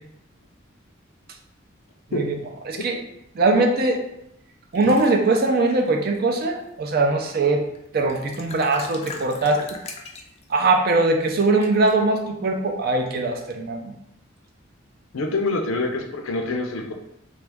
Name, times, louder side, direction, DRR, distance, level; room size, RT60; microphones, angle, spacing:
voice 1, 2.7-3.0 3.3-4.0 4.7-7.6 7.9-9.6 10.5-13.9, right 2 dB, 50° right, 3 dB, 0.4 m, -21 dB
sound 1, 4.7-5.1 5.9-6.4 7.7-7.8 8.1-10.5 11.6-11.9, left 4 dB, 30° left, 0.3 m, -39 dB
voice 2, 15.1-16.9, left 3 dB, 90° left, 3 dB, 0.5 m, -26 dB
2.9 x 2.3 x 3.3 m, 0.81 s
head